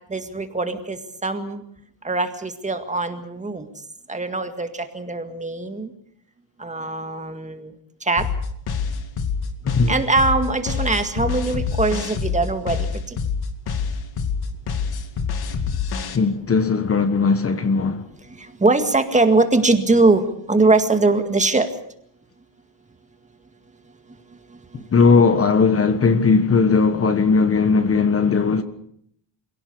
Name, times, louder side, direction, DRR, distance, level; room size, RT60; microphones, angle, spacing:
voice 1, 0.1-1.6 2.0-3.6 4.1-5.9 6.6-7.7 8.1-8.3 9.9-12.9 18.6-21.7 24.7-24.8, right 3 dB, 15° right, 2.0 m, -21 dB
sound 1, 8.2-16.2, left 6 dB, 55° left, 2.5 m, -26 dB
voice 2, 16.1-18.0 24.7-28.6, left 4 dB, 30° left, 1.4 m, -18 dB
27.5 x 17.5 x 6.8 m
cardioid pair, 135°, 45 cm